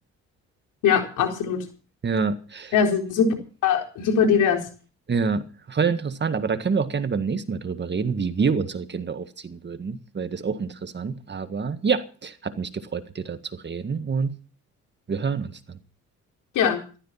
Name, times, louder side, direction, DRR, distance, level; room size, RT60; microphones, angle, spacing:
voice 1, 0.8-1.6 2.7-3.3 3.6-4.6 16.5-16.8, left 7 dB, 85° left, 4.2 m, -21 dB
voice 2, 2.0-2.7 5.1-14.3 15.1-15.8, right 5 dB, 35° right, 1.7 m, -27 dB
15.0 x 13.0 x 5.7 m
cardioid pair, 90°, 30 cm